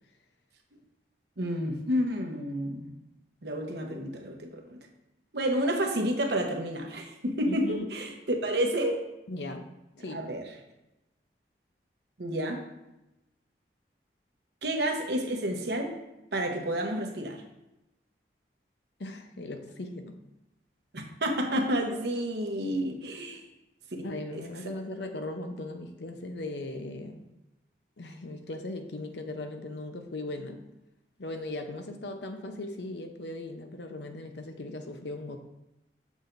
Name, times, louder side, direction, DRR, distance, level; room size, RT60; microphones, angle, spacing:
voice 1, 1.4-2.9 3.4-4.8 5.3-9.0 10.1-10.5 12.2-12.6 14.6-15.9 16.3-17.4 20.9-23.4, equal, 75° right, 2 dB, 1.0 m, -30 dB
voice 2, 7.5-7.9 9.3-10.2 19.0-20.2 23.3-23.4 24.0-27.2 28.0-30.6 31.2-35.4, left 2 dB, 80° left, 6 dB, 0.7 m, -38 dB
7.0 x 6.4 x 2.6 m, 0.95 s
head